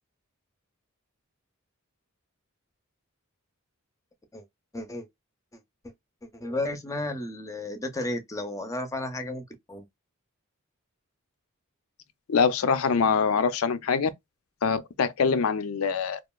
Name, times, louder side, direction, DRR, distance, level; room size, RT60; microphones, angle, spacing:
voice 1, 4.7-5.1 6.3-9.8, left 1 dB, 15° left, 0.5 m, -33 dB
voice 2, 12.3-14.1 14.6-16.2, left 5 dB, 85° left, 0.4 m, -24 dB
2.9 x 2.3 x 2.2 m
head